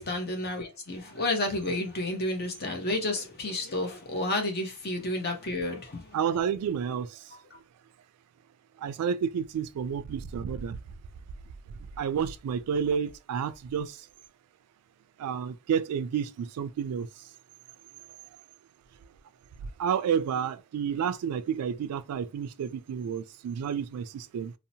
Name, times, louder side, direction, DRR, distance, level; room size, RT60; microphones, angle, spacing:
voice 1, 0.0-6.2 7.3-7.4, left 2 dB, 45° left, 0.7 m, -31 dB
voice 2, 6.1-7.4 8.8-10.8 11.7-14.1 15.2-17.1 19.8-24.5, right 7 dB, 90° right, 0.3 m, -30 dB
2.7 x 2.0 x 2.7 m
head